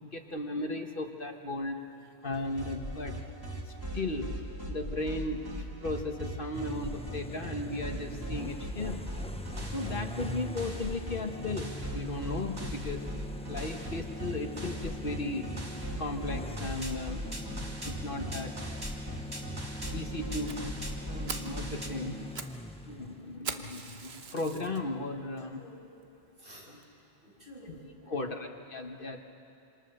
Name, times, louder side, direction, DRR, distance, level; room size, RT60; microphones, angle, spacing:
voice 1, 0.0-1.8 2.2-3.1 3.7-4.3 4.7-9.0 9.7-13.0 13.5-15.5 16.0-17.2 17.8-18.5 19.9-20.6 21.1-22.2 22.8-25.6 26.7-26.8 27.7-27.8 28.1-29.2, left 2 dB, 55° left, 4 dB, 1.5 m, -36 dB
sound 1, 2.3-21.9, right 1 dB, 20° right, 2.3 m, -39 dB
sound 2, 6.5-23.4, left 1 dB, 10° left, 0.5 m, -43 dB
Fire, 20.5-20.6 21.0-21.1 21.3-21.6 22.1-22.6 22.8-22.9 23.4-24.8 25.4-25.5 26.0-26.1 26.4-26.5 26.8-26.9, right 5 dB, 70° right, 1.4 m, -40 dB
voice 2, 25.4-25.7 26.4-26.7 27.2-28.4, equal, 55° right, -4 dB, 6.6 m, -51 dB
27.5 x 26.0 x 6.6 m, 2.7 s
omnidirectional pair, 1.1 m